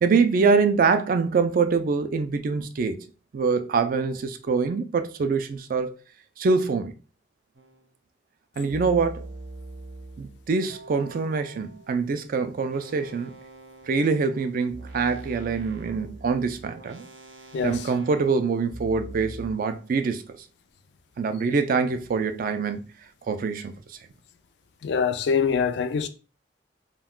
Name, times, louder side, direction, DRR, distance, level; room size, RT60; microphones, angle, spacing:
voice 1, 0.0-3.0 3.3-6.0 6.4-6.9 8.6-9.3 10.2-13.3 13.9-17.0 17.6-20.2 21.2-22.9 23.3-24.0, right 4 dB, 50° right, 0.3 m, -24 dB
sound 1, 7.5-7.9 8.7-12.1 12.7-19.5, right 2 dB, 80° right, 0.8 m, -43 dB
voice 2, 17.5-17.9 24.8-26.1, left 6 dB, 65° left, 0.3 m, -24 dB
2.3 x 2.3 x 3.5 m
head